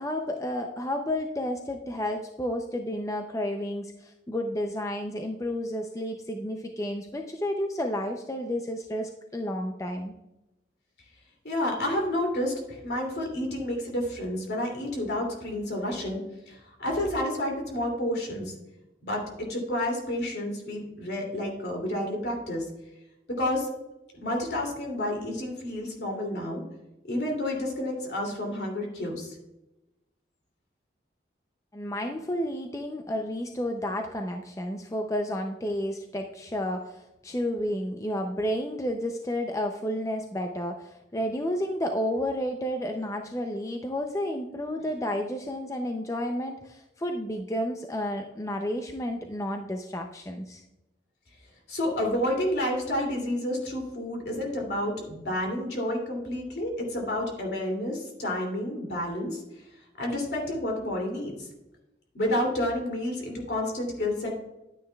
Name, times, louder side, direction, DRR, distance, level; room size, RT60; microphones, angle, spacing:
voice 1, 0.0-10.1 31.7-50.6, left 1 dB, 15° left, 4 dB, 0.5 m, -31 dB
voice 2, 11.4-18.5 19.0-19.2 19.5-22.6 23.3-23.7 24.2-26.6 27.0-29.4 51.7-59.4 60.0-61.5 62.1-64.3, left 1 dB, 65° left, 0 dB, 2.6 m, -30 dB
10.5 x 9.5 x 2.3 m, 0.96 s
head